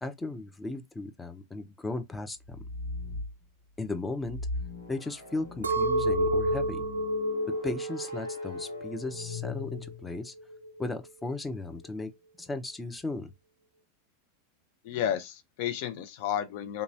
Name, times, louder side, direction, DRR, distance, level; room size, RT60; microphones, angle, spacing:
voice 1, 0.0-2.6 3.8-4.4 4.9-6.8 7.5-10.3 10.8-12.1 12.4-13.3, left 2 dB, 10° left, 0.6 m, -36 dB
sound 1, 2.4-3.4 4.2-10.2, left 1 dB, 80° left, 1.0 m, -39 dB
Chink clink, 5.6-9.9 10.4-11.0, equal, 85° right, 0.3 m, -30 dB
voice 2, 14.8-16.8, left 10 dB, 55° left, 0.6 m, -32 dB
2.9 x 2.3 x 2.7 m
figure-of-eight pair, 90°, 0 cm